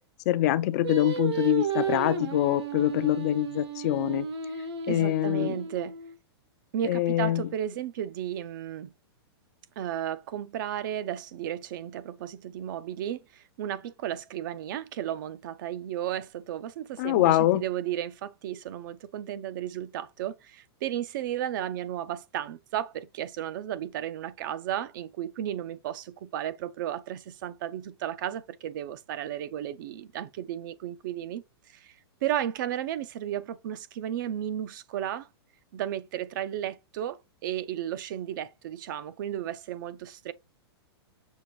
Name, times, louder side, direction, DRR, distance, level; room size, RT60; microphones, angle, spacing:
voice 1, 0.3-4.3 4.9-5.6 6.8-7.4 17.0-17.6, left 14 dB, 40° left, 0.4 m, -24 dB
Singing, 0.8-6.1, right 7 dB, 75° right, 1.2 m, -33 dB
voice 2, 4.9-6.0 6.7-8.9 9.8-31.9 32.2-35.3 35.7-40.3, right 11 dB, 50° right, 0.5 m, -34 dB
6.2 x 2.5 x 3.0 m
hypercardioid pair, 155°, 14 cm